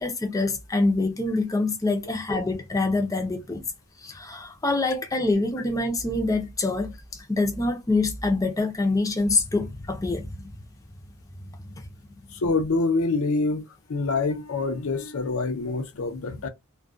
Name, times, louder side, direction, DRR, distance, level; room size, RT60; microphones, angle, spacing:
voice 1, 0.0-3.6 4.0-10.3 11.7-11.8, left 2 dB, 15° left, 0.5 m, -25 dB
voice 2, 12.4-13.6 13.9-16.5, left 3 dB, 70° left, 0.5 m, -25 dB
2.3 x 2.2 x 2.5 m
head